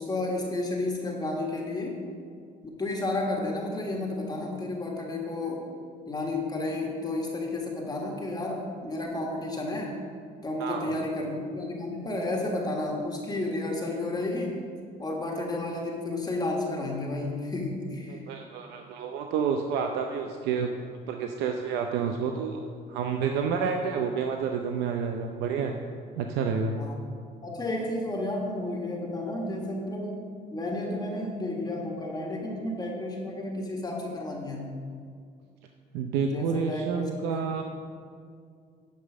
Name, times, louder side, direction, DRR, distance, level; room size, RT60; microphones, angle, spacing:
voice 1, 0.0-2.0 2.6-5.7 6.1-9.9 10.4-18.2 26.8-26.9 27.4-34.8 36.3-37.6, left 2 dB, 25° left, -1 dB, 1.4 m, -32 dB
voice 2, 10.6-11.0 18.1-20.7 21.1-22.6 22.9-25.8 26.2-26.7 35.9-37.6, right 6 dB, 90° right, 4 dB, 0.6 m, -29 dB
10.0 x 5.6 x 6.1 m, 2.2 s
cardioid pair, 110°, 17 cm